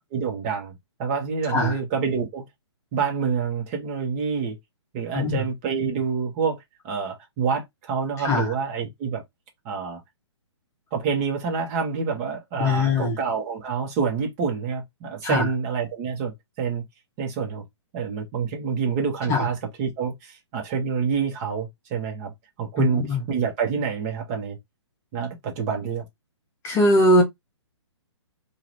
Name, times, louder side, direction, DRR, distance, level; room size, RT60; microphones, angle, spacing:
voice 1, 0.1-2.4 2.9-4.6 4.9-6.6 6.8-9.2 9.6-10.0 10.9-16.8 17.2-17.6 17.9-22.3 22.6-24.6 25.1-26.0, right 6 dB, 30° right, 1.4 m, -27 dB
voice 2, 5.1-5.4 8.2-8.5 12.6-13.2 15.2-15.5 19.3-19.4 22.8-23.2 26.6-27.2, left 2 dB, 20° left, 1.0 m, -21 dB
3.8 x 2.8 x 3.1 m
hypercardioid pair, 145°, 15 cm